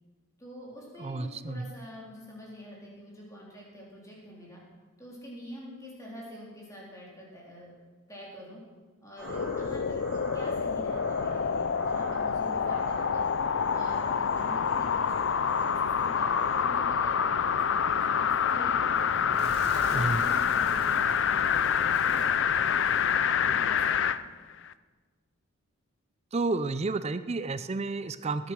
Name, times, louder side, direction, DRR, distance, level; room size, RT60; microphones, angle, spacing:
voice 1, 0.4-4.6 5.0-7.7 8.1-8.6 9.0-13.2 13.7-19.1 19.6-24.1, equal, 15° left, -4 dB, 3.7 m, -46 dB
voice 2, 1.0-1.7 19.9-20.2 26.3-28.5, right 3 dB, 30° right, 12 dB, 0.4 m, -31 dB
sound 1, 9.2-24.2 24.7-24.8, left 7 dB, 55° left, 0.4 m, -27 dB
sound 2, 9.2-16.6, equal, 5° right, 3.9 m, -44 dB
Fire / Explosion, 18.9-23.8, right 1 dB, 50° right, 3.0 m, -44 dB
18.5 x 8.9 x 6.2 m, 1.4 s
head